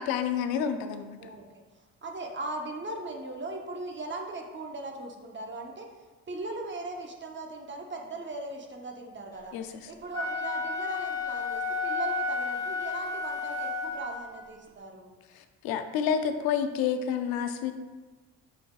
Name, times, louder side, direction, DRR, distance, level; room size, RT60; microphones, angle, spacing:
voice 1, 0.0-1.2 9.5-9.9 15.3-17.7, left 8 dB, 75° left, 8 dB, 0.5 m, -29 dB
voice 2, 2.0-5.9 6.3-9.5 9.9-15.2, right 2 dB, 30° right, 2 dB, 0.8 m, -38 dB
Wind instrument woodwind instrument, 10.0-14.4, left 3 dB, 10° left, 0.8 m, -32 dB
5.6 x 3.4 x 2.3 m, 1.3 s
supercardioid pair, 65°, 37 cm